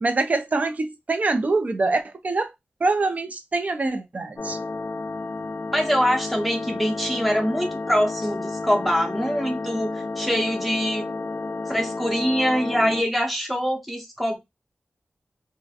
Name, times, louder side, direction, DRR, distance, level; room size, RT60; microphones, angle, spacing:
voice 1, 0.0-2.5 2.8-4.6, right 3 dB, 40° right, 0.4 m, -24 dB
sound 1, 4.4-13.0, left 3 dB, 50° left, 0.4 m, -31 dB
voice 2, 5.7-11.1 11.7-14.4, equal, ahead, 0.6 m, -24 dB
2.4 x 2.1 x 2.6 m
wide cardioid pair, 120°, 4 cm